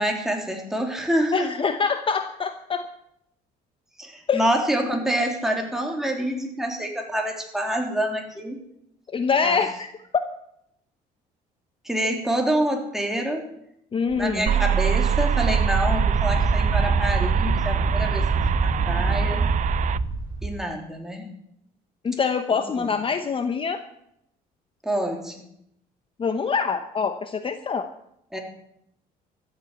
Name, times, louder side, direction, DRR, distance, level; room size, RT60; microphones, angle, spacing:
voice 1, 0.0-1.5 4.0-8.6 9.4-9.6 11.8-13.4 14.2-18.3 18.6-19.4 20.4-21.3 22.8-22.9 24.8-25.3 28.3-28.4, right 1 dB, ahead, 1 dB, 3.4 m, -26 dB
voice 2, 1.3-2.8 4.3-4.5 9.1-9.9 13.9-14.5 22.0-23.8 26.2-27.9, left 5 dB, 30° left, 9 dB, 0.9 m, -25 dB
Wind, 14.1-20.5, right 3 dB, 25° right, 7.1 m, -25 dB
sound 1, 14.5-20.0, right 9 dB, 50° right, 0.6 m, -25 dB
14.0 x 8.5 x 9.2 m, 0.77 s
cardioid pair, 110°, 17 cm